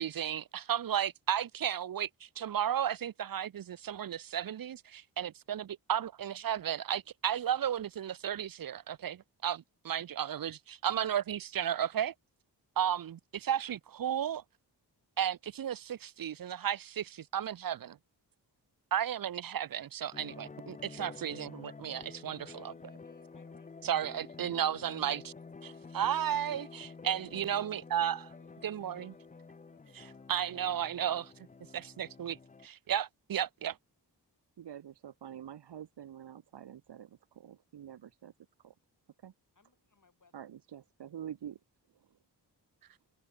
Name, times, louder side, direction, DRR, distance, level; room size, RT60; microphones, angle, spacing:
voice 1, 0.0-2.1 2.4-9.1 9.4-12.1 12.8-14.4 15.2-18.0 18.9-22.5 23.8-25.3 25.6-28.3 28.6-29.1 29.9-31.2 31.7-32.4 32.6-33.8, right 10 dB, 50° right, 0.7 m, -34 dB
sound 1, 20.1-32.7, left 4 dB, 20° left, 0.5 m, -50 dB
voice 2, 22.5-23.8 26.2-30.5 39.6-40.4, left 4 dB, 45° left, 5.2 m, -68 dB
voice 3, 34.6-38.3 38.6-38.7 39.2-39.3 40.3-41.6, right 10 dB, 70° right, 1.2 m, -47 dB
cardioid pair, 45°, 43 cm